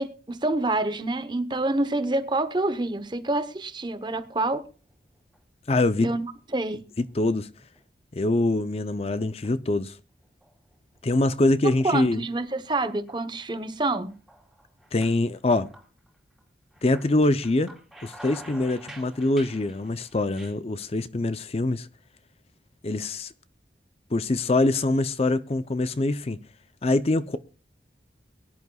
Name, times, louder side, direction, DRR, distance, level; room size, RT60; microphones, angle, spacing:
voice 1, 0.0-4.6 6.0-6.3 6.5-6.8 11.8-14.1, right 2 dB, 25° right, 0.9 m, -27 dB
sound 1, 4.7-5.4 5.8-6.4 6.8-7.4 7.8-7.9 8.7-9.8 10.2-11.2 11.6-11.7 12.6-13.2 13.6-13.7 14.1-16.4 16.7-20.5, right 1 dB, ahead, 2.8 m, -48 dB
voice 2, 5.7-6.1 7.0-7.5 8.1-10.0 11.0-12.2 14.9-15.7 16.8-17.7 18.0-21.9 22.8-23.3 24.1-26.4 26.8-27.4, left 2 dB, 35° left, 0.5 m, -24 dB
22.5 x 11.0 x 2.3 m
head